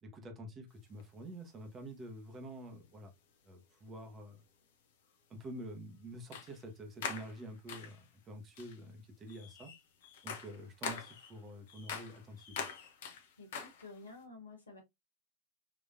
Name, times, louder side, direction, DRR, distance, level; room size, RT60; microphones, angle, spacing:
voice 1, 0.0-3.1 3.5-4.4 5.3-9.7 10.2-12.7, right 1 dB, 25° right, 1.0 m, -48 dB
sound 1, 1.0-1.1 2.7-2.9 3.9-4.0 6.3-6.7 7.0-8.1 8.6-8.8 9.3-14.1, left 6 dB, 55° left, 0.7 m, -44 dB
voice 2, 13.4-14.8, left 3 dB, 75° left, 1.4 m, -51 dB
4.0 x 3.0 x 2.5 m
figure-of-eight pair, 90°, 0 cm